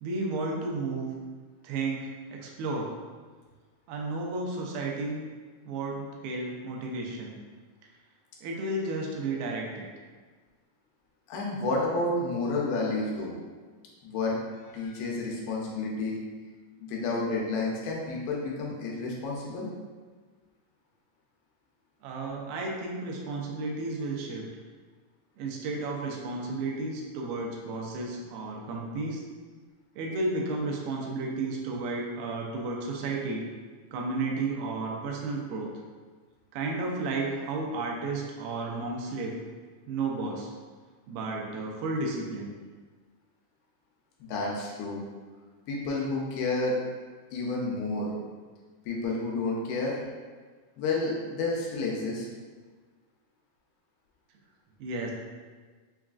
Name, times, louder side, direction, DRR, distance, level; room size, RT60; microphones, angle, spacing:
voice 1, 0.0-1.1 1.6-2.9 3.9-5.2 5.7-7.4 8.4-9.9 22.0-24.5 25.4-29.2 30.0-33.4 33.9-35.7 36.5-39.4 39.9-40.5 41.1-42.5 54.8-55.1, right 3 dB, 85° right, -1 dB, 2.5 m, -32 dB
voice 2, 11.3-13.3 14.0-14.4 14.6-16.2 16.8-19.7 44.3-45.0 45.7-46.7 47.3-48.1 48.9-50.0 50.8-52.3, left 2 dB, 85° left, -3 dB, 2.5 m, -30 dB
6.1 x 2.4 x 2.3 m, 1.4 s
omnidirectional pair, 4.2 m